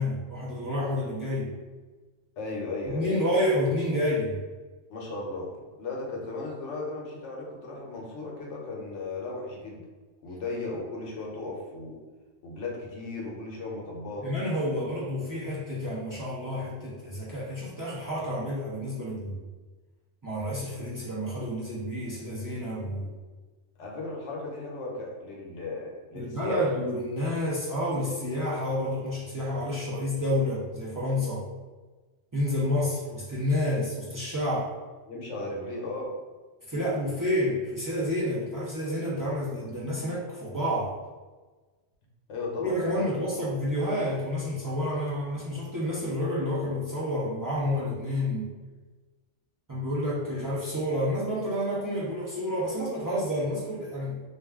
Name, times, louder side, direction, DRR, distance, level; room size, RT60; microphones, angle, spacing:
voice 1, 0.0-1.5 2.9-4.4 14.2-19.4 20.2-23.1 26.1-31.4 32.3-34.7 36.7-41.0 42.6-48.5 49.7-54.2, left 1 dB, 30° right, -9 dB, 0.3 m, -29 dB
voice 2, 2.4-3.1 4.9-5.5 5.8-9.8 10.2-12.0 12.4-14.3 23.8-26.7 35.1-36.1 42.3-43.3, left 3 dB, 70° left, -2 dB, 1.0 m, -36 dB
2.4 x 2.3 x 3.4 m, 1.3 s
omnidirectional pair, 1.3 m